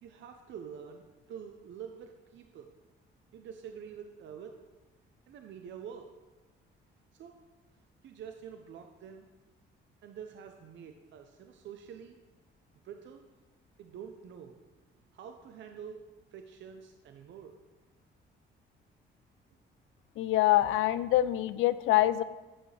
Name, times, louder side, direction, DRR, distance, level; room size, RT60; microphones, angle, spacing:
voice 1, 0.0-2.7 3.3-4.6 5.3-6.1 7.1-7.3 8.0-9.3 10.0-12.2 12.8-13.2 13.8-14.6 15.1-16.0 16.3-17.6, right 7 dB, 70° right, 5 dB, 0.7 m, -46 dB
voice 2, 20.2-22.2, left 14 dB, 85° left, 15 dB, 0.4 m, -25 dB
9.1 x 8.8 x 3.3 m, 1.2 s
cardioid pair, 90°, 20 cm